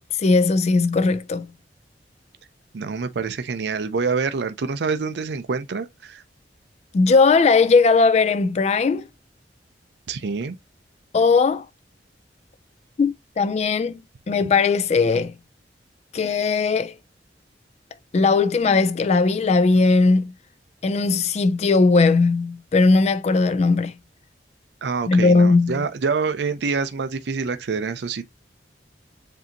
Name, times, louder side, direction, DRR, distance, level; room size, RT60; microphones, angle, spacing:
voice 1, 0.2-1.5 6.9-9.0 11.1-11.7 13.0-14.0 14.3-15.3 16.1-16.9 18.1-20.3 20.8-23.9 25.1-25.8, left 4 dB, 40° left, 0.3 m, -18 dB
voice 2, 2.7-6.2 10.1-10.6 14.4-14.5 24.8-28.2, right 5 dB, 65° right, 0.5 m, -26 dB
7.4 x 2.7 x 2.6 m
head